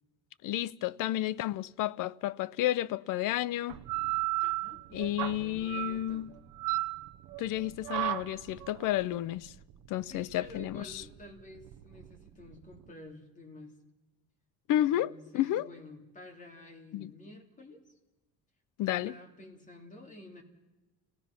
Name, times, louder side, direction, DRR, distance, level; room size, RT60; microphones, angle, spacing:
voice 1, 0.4-3.8 4.9-6.3 7.4-9.5 9.9-10.9 14.7-15.7 16.9-17.1 18.8-19.1, left 13 dB, 65° left, 0.7 m, -31 dB
sound 1, 3.7-12.9, right 18 dB, 70° right, 0.8 m, -36 dB
voice 2, 4.4-6.4 10.0-13.8 14.7-17.8 18.8-20.4, left 1 dB, 20° left, 2.8 m, -51 dB
29.5 x 17.0 x 5.9 m
cardioid pair, 155°, 35 cm